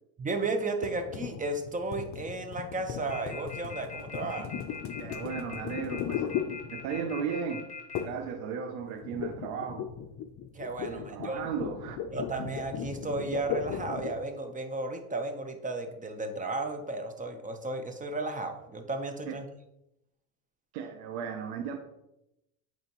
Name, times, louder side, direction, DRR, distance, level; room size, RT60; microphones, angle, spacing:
voice 1, 0.2-4.5 10.5-11.4 12.1-19.5, right 2 dB, 20° right, 6 dB, 0.9 m, -34 dB
sound 1, 0.8-7.1 7.9-8.3 8.6-14.3, left 8 dB, 45° left, 0.7 m, -37 dB
sound 2, 3.1-8.0, left 5 dB, 20° left, 2.3 m, -41 dB
voice 2, 5.0-6.3 6.7-7.7 8.0-9.9 10.8-12.0 19.3-19.4 20.7-21.8, right 7 dB, 85° right, 5 dB, 0.8 m, -35 dB
8.0 x 4.4 x 3.0 m, 0.87 s
supercardioid pair, 105°, 42 cm